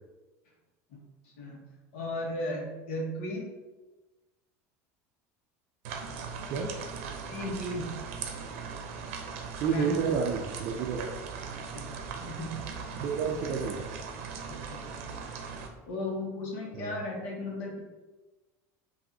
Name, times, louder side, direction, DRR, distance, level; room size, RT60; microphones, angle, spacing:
voice 1, 1.2-1.6 1.9-3.5 7.3-7.9 9.7-10.0 11.7-12.6 14.5-15.2 15.9-17.8, left 1 dB, 75° left, -1 dB, 1.2 m, -36 dB
sound 1, 5.9-15.7, right 5 dB, 90° right, 0.6 m, -39 dB
voice 2, 9.6-11.1 13.0-13.9 16.7-17.0, right 6 dB, 40° right, -1 dB, 0.4 m, -30 dB
5.6 x 2.6 x 2.7 m, 1.2 s
cardioid pair, 160°, 7 cm